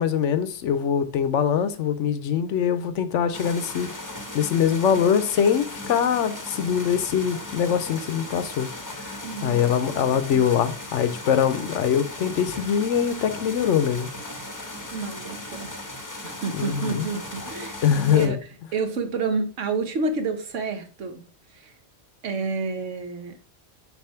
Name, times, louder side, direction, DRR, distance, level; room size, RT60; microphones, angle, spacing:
voice 1, 0.0-3.9 4.3-8.7 9.0-9.1 9.4-14.1 16.6-17.1 17.8-18.4, left 8 dB, 80° left, 1.0 m, -23 dB
sound 1, 3.3-18.3, left 1 dB, 20° left, 0.8 m, -37 dB
voice 2, 9.2-9.7 14.9-15.7 16.2-18.4 18.7-21.2 21.5-21.7 22.2-23.4, right 4 dB, 80° right, 1.3 m, -29 dB
7.0 x 2.7 x 5.6 m
omnidirectional pair, 1.3 m